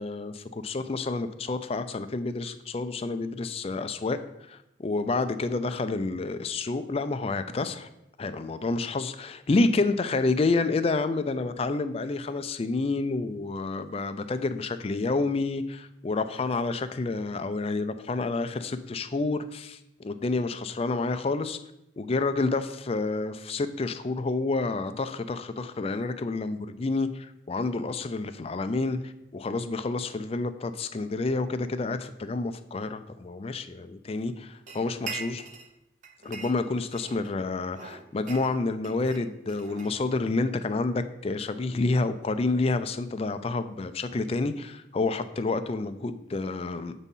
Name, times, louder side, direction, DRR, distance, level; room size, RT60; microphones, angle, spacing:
voice 1, 0.0-4.2 4.5-7.9 8.2-21.6 22.0-35.4 36.2-46.9, left 3 dB, 35° left, 10 dB, 0.4 m, -29 dB
sound 1, 34.7-35.7 36.0-37.3 37.7-40.4, right 4 dB, 45° right, 0.7 m, -42 dB
7.2 x 4.1 x 5.4 m, 0.85 s
head